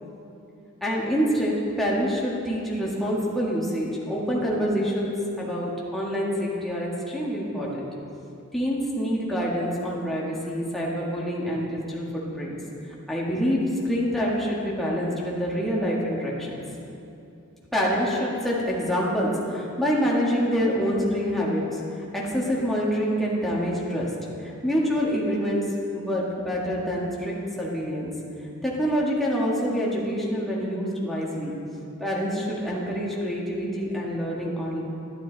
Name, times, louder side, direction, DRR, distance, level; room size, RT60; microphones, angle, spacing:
voice 1, 0.8-7.9 8.5-12.6 13.1-16.6 17.7-21.8 22.1-24.1 24.4-25.6 25.9-28.1 28.6-31.5 32.0-34.8, equal, ahead, -6 dB, 1.7 m, -26 dB
12.0 x 12.0 x 4.0 m, 2.7 s
head